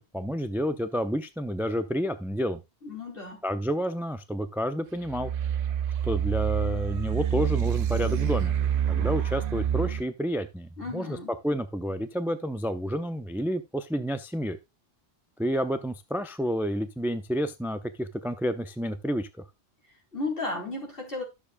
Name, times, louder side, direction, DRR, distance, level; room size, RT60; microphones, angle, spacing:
voice 1, 0.0-2.6 3.4-5.3 6.0-8.6 8.9-11.2 11.4-14.6 15.4-19.3, equal, 5° right, 0.4 m, -30 dB
voice 2, 2.8-3.4 10.8-11.3 19.9-21.2, left 2 dB, 50° left, 3.9 m, -34 dB
sound 1, 5.0-10.0, right 9 dB, 55° right, 0.7 m, -27 dB
12.5 x 6.8 x 2.2 m
omnidirectional pair, 1.2 m